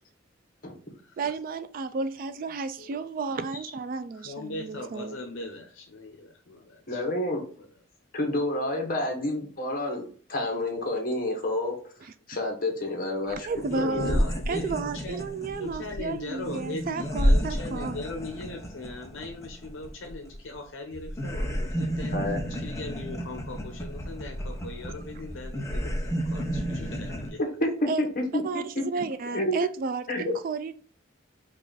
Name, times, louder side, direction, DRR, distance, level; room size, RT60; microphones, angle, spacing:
voice 1, 1.2-5.2 13.5-18.0 27.9-28.0 28.4-30.7, right 4 dB, 45° right, 0.3 m, -32 dB
voice 2, 4.1-7.0 7.6-7.7 9.0-9.1 13.7-15.2 15.6-22.2 22.5-27.4, left 2 dB, 75° left, 0.7 m, -39 dB
voice 3, 6.9-7.4 8.1-11.8 12.3-13.5 13.7-14.2 22.1-22.4 27.6-28.8 29.3-29.7 30.1-30.3, left 1 dB, 45° left, 1.3 m, -29 dB
sound 1, 13.3-13.4 13.6-20.6 20.9-27.3, equal, 15° left, 0.7 m, -31 dB
5.2 x 2.5 x 3.9 m
head